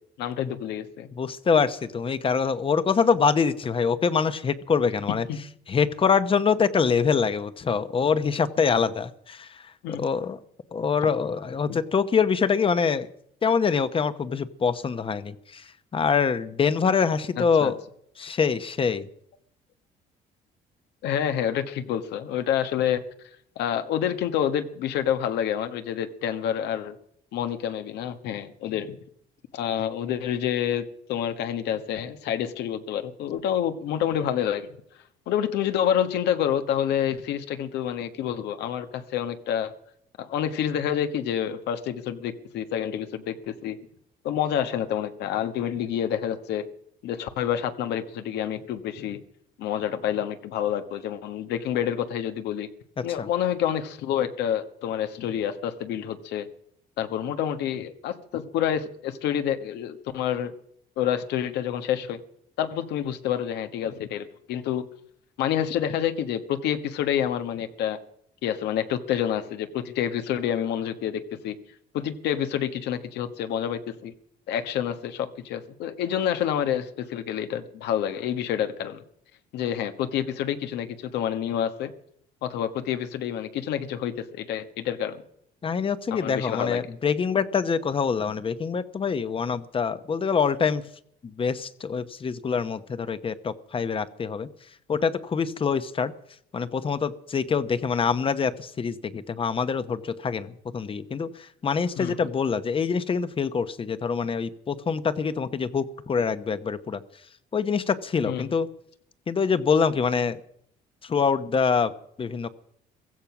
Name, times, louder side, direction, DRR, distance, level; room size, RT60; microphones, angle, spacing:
voice 1, 0.2-1.1 5.3-5.4 9.8-10.0 11.7-11.8 17.4-17.7 21.0-23.0 23.5-27.0 27.3-29.0 29.5-34.8 35.3-39.7 40.2-43.8 44.2-46.6 47.0-49.2 49.6-52.7 53.0-56.5 57.0-60.5 61.0-62.2 62.6-64.8 65.4-68.0 68.4-71.6 71.9-74.1 74.5-79.0 79.5-81.9 82.4-85.2 86.1-86.8 102.0-102.2 108.3-108.5, left 9 dB, 80° left, 9 dB, 1.4 m, -28 dB
voice 2, 1.1-5.3 5.7-9.7 10.0-10.4 10.7-13.1 13.4-17.8 18.2-19.1 53.2-53.3 85.6-90.8 91.4-94.5 94.9-96.1 96.5-107.0 107.5-108.7 109.3-110.4 111.0-111.9 112.2-112.5, left 6 dB, 30° left, 13 dB, 1.0 m, -25 dB
16.0 x 14.5 x 6.0 m, 0.70 s
cardioid pair, 110°, 17 cm